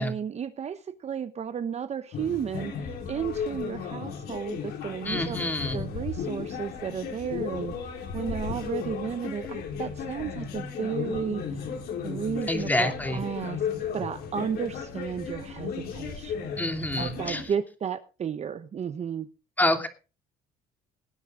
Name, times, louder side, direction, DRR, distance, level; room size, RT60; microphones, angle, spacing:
voice 1, 0.0-5.4 5.7-11.6 12.0-13.6 13.9-16.5 17.0-19.3, right 7 dB, 40° right, 11 dB, 1.0 m, -33 dB
sound 1, 2.1-17.4, left 6 dB, 70° left, 4.2 m, -35 dB
voice 2, 5.0-5.9 12.5-13.2 16.6-17.4 19.6-19.9, left 1 dB, 10° left, 5 dB, 2.8 m, -27 dB
19.0 x 9.3 x 3.8 m, 0.33 s
cardioid pair, 110°, 17 cm